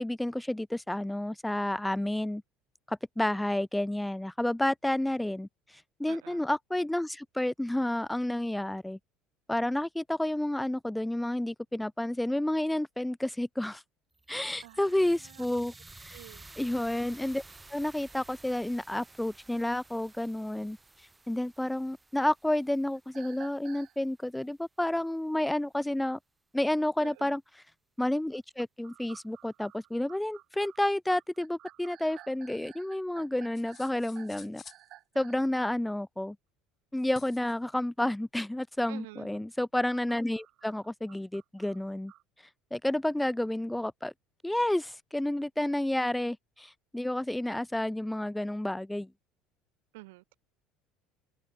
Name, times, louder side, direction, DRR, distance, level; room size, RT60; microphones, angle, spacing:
voice 1, 0.0-2.4 2.9-9.0 9.5-13.8 14.3-15.7 16.0-16.2 16.6-17.4 17.7-20.8 21.3-26.2 26.5-27.4 28.0-34.6 35.2-36.4 36.9-42.1 42.7-44.1 44.4-49.1, left 1 dB, 5° left, 0.3 m, -30 dB
voice 2, 6.1-6.4 14.6-15.5 16.1-16.5 27.0-27.4 35.1-35.5 38.9-39.3 49.9-50.4, right 22 dB, 80° right, 2.1 m, -50 dB
sound 1, 14.1-24.3, right 2 dB, 15° right, 4.5 m, -53 dB
sound 2, 22.9-24.0 28.3-35.5 39.3-42.2, right 15 dB, 60° right, 0.9 m, -54 dB
sound 3, 33.5-34.9 37.0-37.6, left 7 dB, 35° left, 5.6 m, -51 dB
hypercardioid pair, 85°, 0 cm